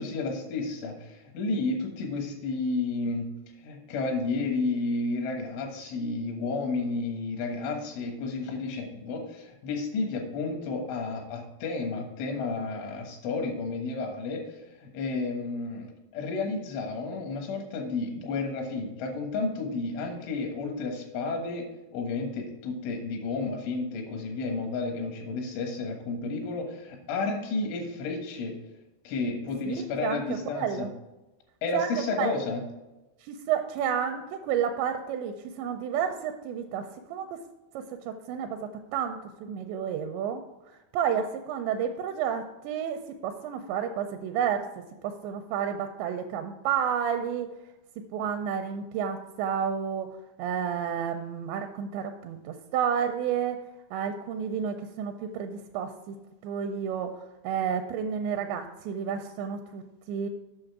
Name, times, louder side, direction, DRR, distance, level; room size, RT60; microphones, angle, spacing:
voice 1, 0.0-3.3 3.6-21.7 21.9-28.5 29.1-30.9 31.6-32.6, left 3 dB, 85° left, 3 dB, 3.8 m, -31 dB
voice 2, 30.0-30.9 31.7-32.4 33.2-37.4 37.7-40.4 40.7-44.7 45.0-47.5 48.1-53.6 53.9-56.2 56.4-59.8 60.1-60.3, right 8 dB, 85° right, 6 dB, 2.6 m, -31 dB
8.8 x 6.2 x 4.7 m, 1.0 s
omnidirectional pair, 5.4 m